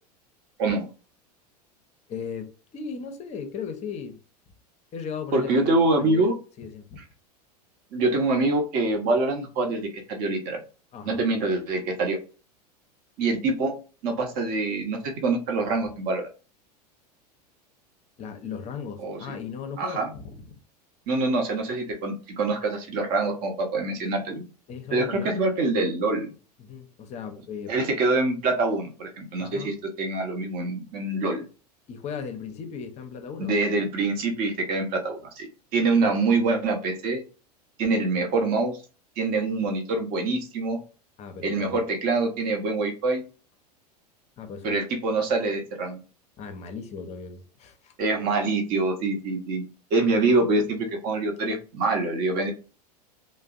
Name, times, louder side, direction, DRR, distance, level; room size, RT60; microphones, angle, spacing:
voice 1, 2.1-4.2 4.9-7.0 10.9-11.2 18.2-20.6 24.7-25.4 26.6-27.8 29.4-29.7 30.6-30.7 31.9-33.6 36.0-36.2 41.2-41.8 44.4-44.8 46.4-47.9, left 6 dB, 30° left, 0.5 m, -37 dB
voice 2, 5.3-6.3 7.9-10.6 11.0-12.2 13.2-13.7 14.0-16.2 19.0-19.2 19.8-20.1 21.1-24.4 24.9-26.3 27.7-31.4 33.4-37.2 37.8-38.8 39.2-40.8 41.4-43.2 44.6-46.0 48.0-49.6 49.9-52.5, right 3 dB, 45° right, 0.8 m, -25 dB
2.5 x 2.0 x 2.4 m
figure-of-eight pair, 85°, 21 cm